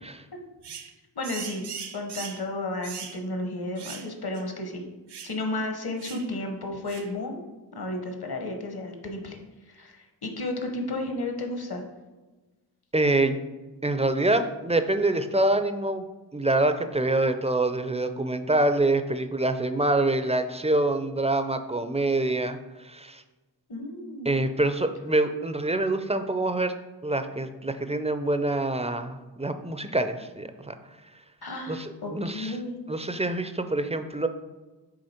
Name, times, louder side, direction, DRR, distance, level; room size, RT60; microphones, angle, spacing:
sound 1, 0.6-0.9 1.2-2.5 2.8-3.2 3.8-4.1 4.4-4.5 5.1-5.4 6.0-6.3 6.9-7.1, right 7 dB, 70° right, 0.7 m, -39 dB
voice 1, 1.1-1.6 1.9-4.8 5.2-11.8 23.7-24.3 31.4-32.8, left 2 dB, 60° left, 4 dB, 1.2 m, -33 dB
voice 2, 12.9-13.4 13.8-16.1 16.3-22.6 22.8-23.2 24.3-26.7 27.0-30.7 31.7-31.8 32.1-32.5 32.9-34.3, right 2 dB, 15° right, 9 dB, 0.4 m, -25 dB
6.4 x 3.9 x 4.3 m, 1.2 s
cardioid pair, 55°, 42 cm